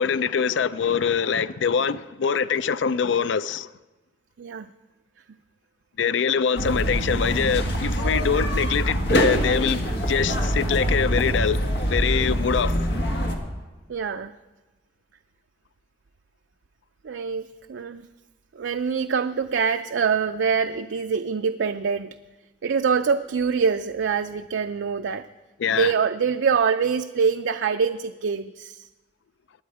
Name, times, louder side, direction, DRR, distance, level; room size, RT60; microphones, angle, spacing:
voice 1, 0.0-3.7 6.0-11.6 11.9-12.8 25.6-25.9, left 6 dB, 85° left, 0.4 m, -24 dB
voice 2, 4.4-4.7 13.9-14.3 17.0-18.0 18.5-22.2 22.6-25.3 25.8-28.9, right 6 dB, 85° right, 0.4 m, -24 dB
sound 1, 6.6-13.4, equal, 70° left, 1.8 m, -24 dB
20.0 x 9.3 x 4.8 m
head